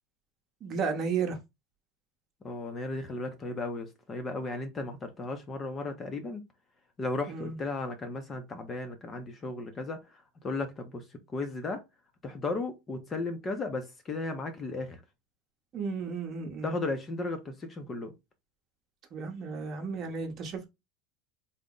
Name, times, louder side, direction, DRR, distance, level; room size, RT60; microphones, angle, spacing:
voice 1, 0.6-1.4 7.3-7.6 15.7-16.7 19.1-20.7, right 5 dB, 30° right, 0.9 m, -33 dB
voice 2, 2.4-6.4 7.0-11.8 12.2-15.0 16.6-18.1, left 3 dB, 20° left, 0.5 m, -35 dB
3.8 x 2.0 x 3.6 m
supercardioid pair, 170°, 0 cm